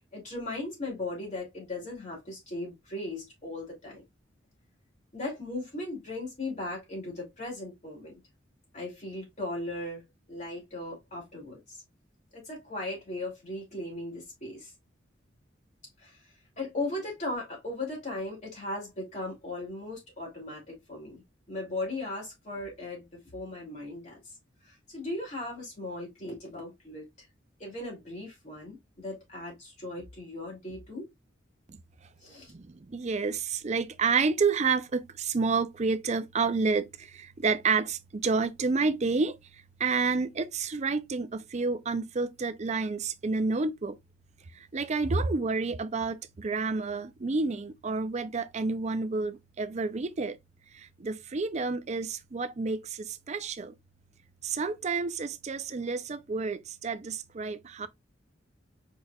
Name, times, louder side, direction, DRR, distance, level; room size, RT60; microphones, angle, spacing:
voice 1, 0.1-4.0 5.1-8.2 8.7-10.0 10.3-11.8 12.3-14.7 16.0-16.3 16.6-21.2 21.5-24.3 24.6-27.3 27.6-31.1 32.2-32.5, left 2 dB, 40° left, 2.6 m, -37 dB
voice 2, 32.5-39.4 39.8-44.0 44.6-50.4 50.7-53.7 54.4-57.9, right 4 dB, 35° right, 0.5 m, -29 dB
4.8 x 4.5 x 2.3 m
head